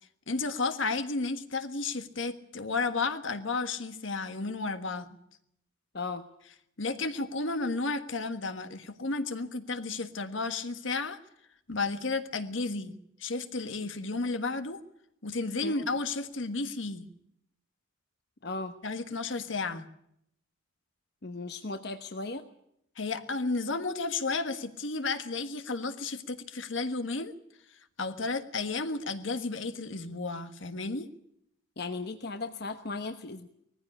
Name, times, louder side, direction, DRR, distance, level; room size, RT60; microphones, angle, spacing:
voice 1, 0.3-5.2 6.8-11.2 11.7-14.8 15.2-17.1 18.8-19.9 23.0-27.3 28.0-31.1, left 3 dB, 70° left, 9 dB, 1.5 m, -32 dB
voice 2, 5.9-6.3 15.6-15.8 18.4-18.8 21.2-22.4 31.8-33.5, left 3 dB, 55° left, 8 dB, 1.1 m, -36 dB
19.5 x 15.0 x 9.8 m, 0.75 s
head